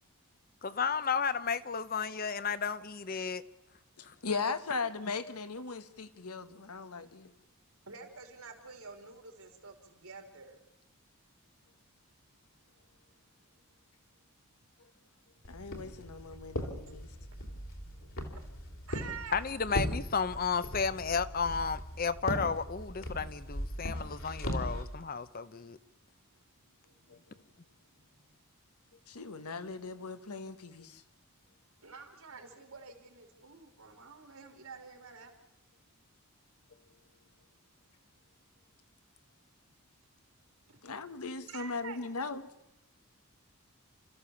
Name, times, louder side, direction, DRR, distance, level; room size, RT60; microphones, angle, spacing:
voice 1, 0.6-3.4 4.0-4.1 19.3-25.8, left 5 dB, 40° left, 0.7 m, -33 dB
voice 2, 4.0-7.3 15.5-17.1 27.1-27.2 29.1-31.0 40.8-42.4, left 4 dB, 90° left, 1.3 m, -38 dB
voice 3, 7.9-10.6 18.3-18.5 18.9-19.5 26.8-27.3 27.9-28.3 31.8-35.3 40.7-40.9 41.5-42.1, right 5 dB, 75° right, 3.2 m, -49 dB
Walk footsteps, 15.4-24.8, equal, 65° left, 3.3 m, -39 dB
29.0 x 14.0 x 7.1 m
head